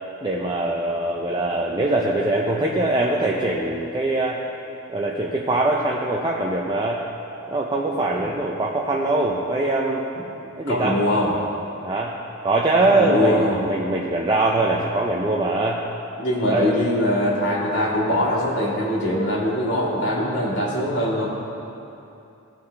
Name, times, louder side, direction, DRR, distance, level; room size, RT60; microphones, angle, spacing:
voice 1, 0.2-4.4 4.9-7.0 7.5-10.0 10.6-11.0 11.8-12.1 12.4-15.8 16.5-16.7 17.2-17.3, right 2 dB, 20° right, -2 dB, 0.5 m, -22 dB
voice 2, 10.7-11.3 12.9-13.6 16.2-21.3, left 1 dB, 60° left, -9 dB, 2.1 m, -22 dB
16.5 x 5.6 x 3.4 m, 2.8 s
head